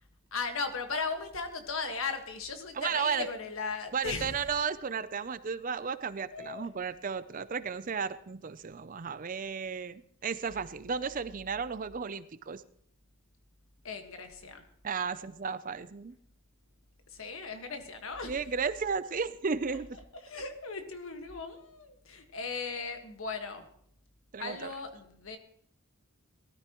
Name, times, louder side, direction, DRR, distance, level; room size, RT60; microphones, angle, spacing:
voice 1, 0.3-4.4 6.3-6.7 13.8-14.6 17.1-18.3 20.2-23.6 24.4-25.4, left 4 dB, 65° left, 6 dB, 1.6 m, -37 dB
voice 2, 2.8-3.2 3.9-12.6 14.8-16.1 18.2-19.9 24.3-24.7, right 5 dB, 35° right, 14 dB, 0.4 m, -34 dB
19.0 x 13.0 x 3.0 m, 0.66 s
head